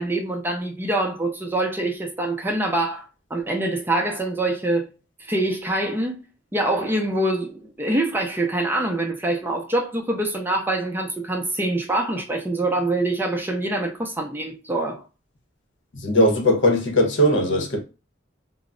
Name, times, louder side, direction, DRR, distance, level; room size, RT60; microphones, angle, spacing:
voice 1, 0.0-4.9 5.2-6.2 6.5-15.0, right 2 dB, 10° right, 0.5 m, -25 dB
voice 2, 15.9-17.8, equal, 65° left, 0.7 m, -19 dB
2.2 x 2.0 x 3.7 m
head